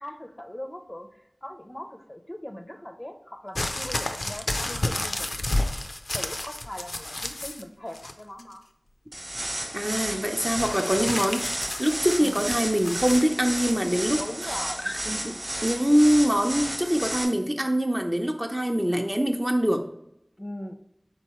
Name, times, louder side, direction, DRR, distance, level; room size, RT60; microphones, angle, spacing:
voice 1, 0.0-5.3 6.1-8.6 10.7-11.4 12.2-12.4 14.2-14.8 20.4-20.7, left 1 dB, 30° left, 5 dB, 0.5 m, -40 dB
sound 1, 3.5-7.6 7.9-8.5 10.6-13.3 14.1-14.2, left 2 dB, 80° left, 0.4 m, -31 dB
sound 2, 9.1-17.2, right 1 dB, 80° right, 1.0 m, -33 dB
voice 2, 9.7-14.2 14.8-19.8, equal, 20° right, 3 dB, 0.5 m, -24 dB
4.6 x 3.8 x 3.0 m, 0.76 s
wide cardioid pair, 45°, 0 cm